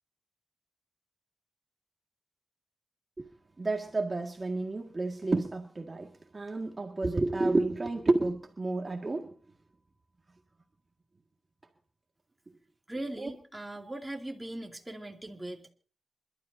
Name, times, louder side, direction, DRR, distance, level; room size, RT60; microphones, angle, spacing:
voice 1, 3.6-9.3 13.2-13.3, right 2 dB, 35° right, 2 dB, 1.9 m, -30 dB
voice 2, 12.9-15.7, right 1 dB, 15° right, 1 dB, 2.7 m, -40 dB
27.5 x 12.5 x 2.7 m, 0.39 s
wide cardioid pair, 90°, 0 cm